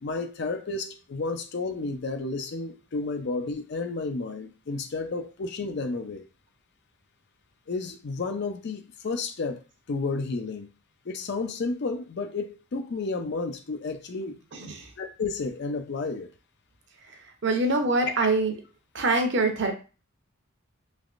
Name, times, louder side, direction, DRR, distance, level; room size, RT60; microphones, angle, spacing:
voice 1, 0.0-6.3 7.7-9.6 9.9-10.7 11.1-14.4 15.0-16.3, left 3 dB, 55° left, 0.5 m, -31 dB
voice 2, 14.5-14.9 17.0-18.5 18.9-19.7, right 2 dB, 60° right, 0.7 m, -25 dB
3.4 x 3.0 x 2.4 m
head